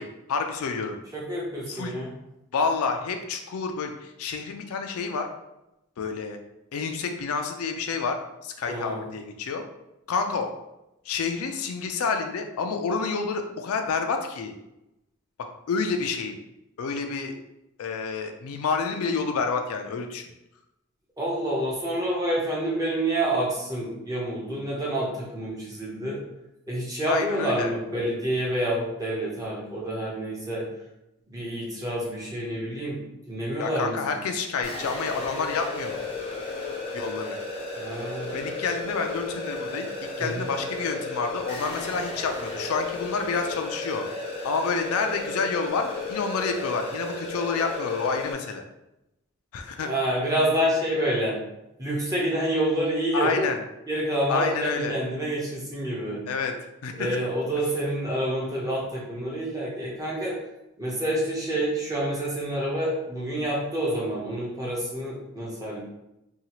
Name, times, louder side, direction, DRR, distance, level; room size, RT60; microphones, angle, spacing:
voice 1, 0.0-1.0 1.7-1.9 2.5-5.3 6.0-6.4 6.7-8.2 8.4-9.6 10.1-10.5 11.1-14.5 15.7-16.4 16.8-17.3 17.8-20.2 27.1-27.7 33.6-36.0 36.9-37.4 38.3-39.9 40.2-44.0 44.4-48.6 49.5-49.9 53.1-53.6 54.3-54.9 56.3-56.5 56.8-57.1, left 5 dB, 75° left, 5 dB, 0.4 m, -29 dB
voice 2, 1.1-2.1 8.7-9.0 21.2-26.2 26.7-30.7 31.3-34.2 37.8-38.5 40.2-40.5 49.8-51.4 51.8-53.5 53.9-56.2 57.0-60.3 60.8-65.8, right 1 dB, 15° right, -5 dB, 0.7 m, -28 dB
sound 1, 34.6-48.3, left 2 dB, 25° left, 0.5 m, -34 dB
2.8 x 2.3 x 2.9 m, 0.90 s
head